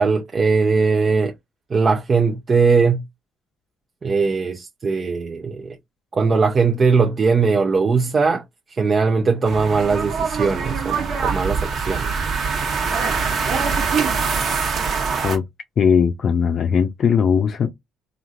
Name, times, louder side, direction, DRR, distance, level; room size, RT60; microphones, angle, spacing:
voice 1, 0.0-1.3 1.7-3.0 4.0-5.8 6.1-8.4 8.8-12.1, right 4 dB, 35° right, 0.6 m, -19 dB
sound 1, 9.5-15.4, right 5 dB, 55° right, 1.1 m, -23 dB
voice 2, 15.8-17.7, left 6 dB, 50° left, 0.5 m, -18 dB
3.1 x 2.5 x 2.5 m
supercardioid pair, 65°, 0 cm